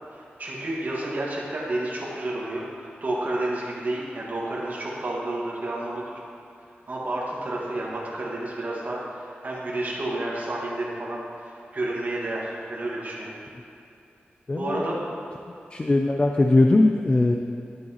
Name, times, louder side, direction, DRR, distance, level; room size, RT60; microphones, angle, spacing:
voice 1, 0.1-6.0 6.9-13.3 14.5-15.0, right 1 dB, 45° right, -5 dB, 1.7 m, -30 dB
voice 2, 14.5-14.9 15.7-17.4, left 2 dB, 25° left, 3 dB, 0.4 m, -20 dB
11.0 x 7.9 x 3.0 m, 2.7 s
wide cardioid pair, 115°, 4 cm